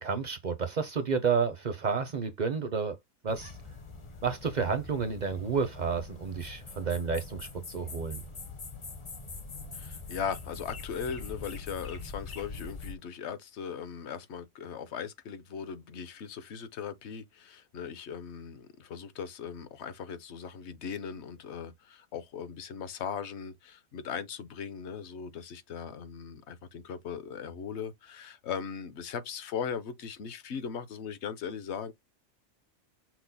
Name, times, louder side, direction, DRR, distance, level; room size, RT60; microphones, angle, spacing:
voice 1, 0.0-2.9 3.2-3.5 4.2-8.2, right 5 dB, 50° right, 0.5 m, -30 dB
sound 1, 3.3-13.0, left 4 dB, 35° left, 0.5 m, -43 dB
voice 2, 9.7-31.9, left 7 dB, 60° left, 0.9 m, -39 dB
6.0 x 2.1 x 3.9 m
omnidirectional pair, 1.4 m